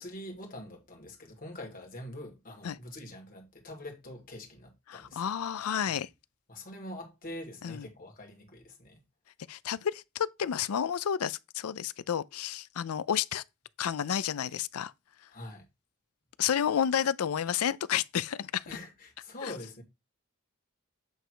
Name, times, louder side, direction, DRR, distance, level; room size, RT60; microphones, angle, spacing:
voice 1, 0.0-5.2 5.9-6.0 6.5-9.0 15.3-15.7 18.7-19.8, left 1 dB, 40° left, 2.2 m, -44 dB
voice 2, 4.9-6.1 7.6-7.9 9.5-13.4 13.8-14.9 16.4-18.7 19.4-19.5, left 8 dB, 85° left, 0.4 m, -31 dB
8.2 x 3.3 x 4.7 m
head